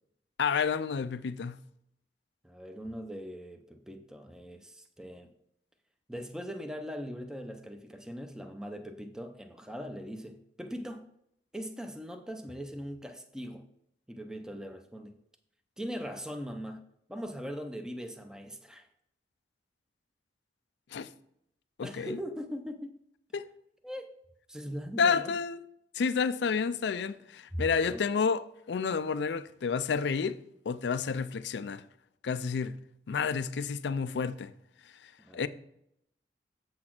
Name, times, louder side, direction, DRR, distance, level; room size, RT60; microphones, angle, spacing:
voice 1, 0.4-1.6 20.9-21.1 21.8-22.2 23.3-23.5 25.0-25.6 25.9-28.4 28.7-30.4 30.7-31.8 32.2-32.8 33.1-34.5 35.3-35.5, left 5 dB, 65° left, 0.4 m, -30 dB
voice 2, 2.4-5.3 6.1-11.1 11.5-13.7 14.1-15.1 15.8-16.8 17.1-18.9 21.8-23.0 23.8-24.1 24.5-25.3 27.5-28.2 35.2-35.4, equal, 5° right, 0.6 m, -40 dB
7.6 x 4.1 x 5.9 m
head